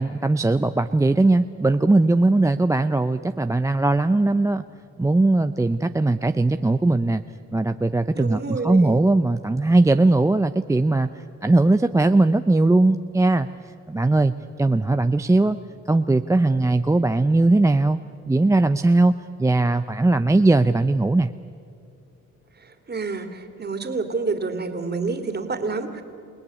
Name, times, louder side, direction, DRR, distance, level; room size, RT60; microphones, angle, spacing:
voice 1, 0.0-4.6 5.0-7.2 7.5-11.1 11.4-13.5 13.9-14.3 14.6-15.6 15.9-18.0 18.3-21.3, right 2 dB, 10° right, 9 dB, 0.6 m, -19 dB
voice 2, 8.1-9.0 22.9-26.0, right 4 dB, 35° right, 6 dB, 2.8 m, -28 dB
28.0 x 18.5 x 9.8 m, 2.4 s
cardioid pair, 90°, 30 cm